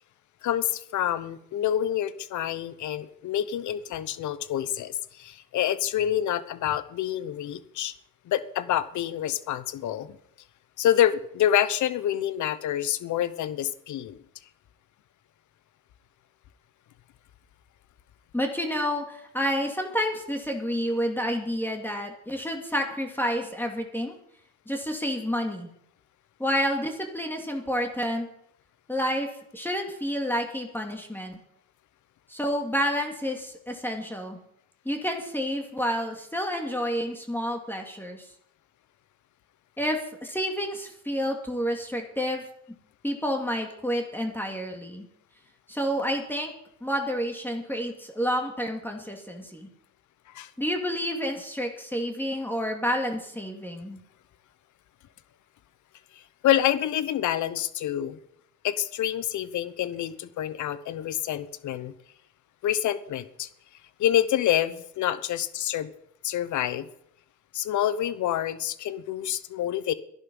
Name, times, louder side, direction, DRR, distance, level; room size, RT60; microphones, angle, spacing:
voice 1, 0.4-7.9 8.3-10.2 10.8-14.2 50.3-50.5 56.1-58.2 58.6-61.9 62.6-63.5 64.0-65.9 66.2-66.9 67.5-69.9, left 11 dB, 75° left, 15 dB, 1.0 m, -27 dB
voice 2, 18.3-24.1 24.7-25.7 26.4-28.3 28.9-29.3 29.5-31.4 32.3-34.4 34.8-38.3 39.8-42.4 43.0-45.1 45.7-46.5 46.8-49.7 50.6-54.0, equal, 5° left, 2 dB, 2.6 m, -29 dB
13.5 x 11.0 x 5.5 m, 0.70 s
cardioid pair, 90°, 30 cm